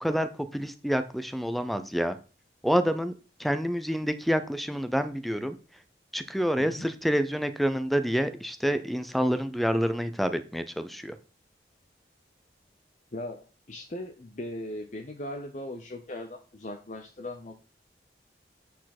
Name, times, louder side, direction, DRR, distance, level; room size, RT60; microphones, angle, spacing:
voice 1, 0.0-2.2 2.6-3.1 3.4-5.5 6.1-11.2, equal, ahead, 11 dB, 0.5 m, -28 dB
voice 2, 13.1-17.5, left 1 dB, 40° left, 4 dB, 0.8 m, -39 dB
8.5 x 4.5 x 5.9 m, 0.34 s
head